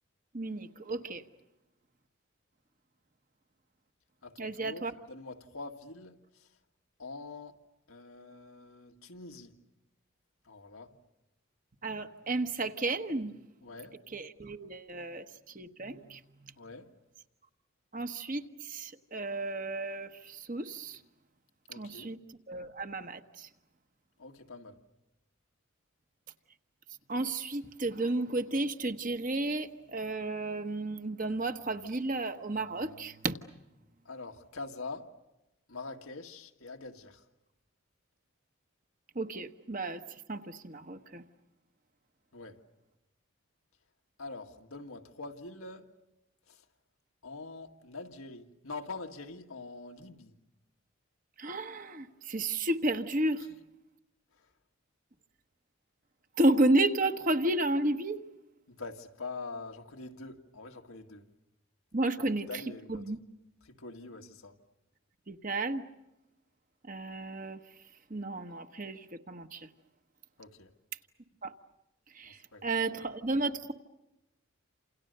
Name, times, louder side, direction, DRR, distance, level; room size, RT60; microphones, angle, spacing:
voice 1, 0.3-1.2 4.4-4.9 11.8-13.3 14.1-16.5 17.9-21.0 21.7-22.2 22.5-23.5 27.1-33.4 39.1-40.0 40.3-41.2 51.4-53.5 56.3-58.2 61.9-62.5 62.9-63.2 65.3-65.8 66.8-67.6 68.1-69.7 71.4-71.5 72.1-73.7, right 2 dB, 40° right, 1.2 m, -32 dB
voice 2, 4.2-6.5 7.0-7.6 7.9-9.6 10.5-10.9 13.6-14.0 16.6-16.9 21.7-22.1 24.2-24.8 34.1-35.1 35.7-37.2 42.3-42.6 44.2-45.9 46.5-46.7 47.2-50.3 54.3-54.5 58.7-61.3 62.5-63.0 63.6-64.6 70.4-70.7 72.2-72.7, left 3 dB, 85° left, 2.0 m, -44 dB
29.0 x 28.0 x 6.7 m
head